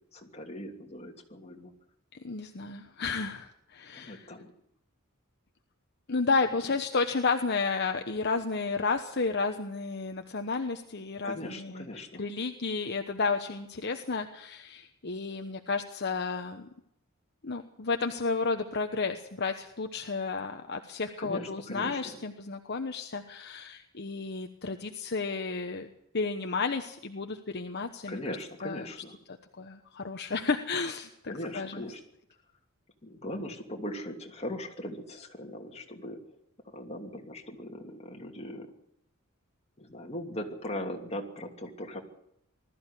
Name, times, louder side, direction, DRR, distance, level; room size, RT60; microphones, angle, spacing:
voice 1, 0.1-1.7 3.9-4.5 11.2-12.2 21.2-22.2 28.1-29.1 31.3-32.0 33.0-36.2 36.7-38.7 39.8-42.0, left 1 dB, 30° left, 2 dB, 2.8 m, -39 dB
voice 2, 2.2-4.3 6.1-16.7 17.4-28.2 28.6-28.9 29.3-31.8, left 4 dB, 50° left, 6 dB, 1.1 m, -32 dB
20.0 x 13.5 x 9.9 m, 0.78 s
head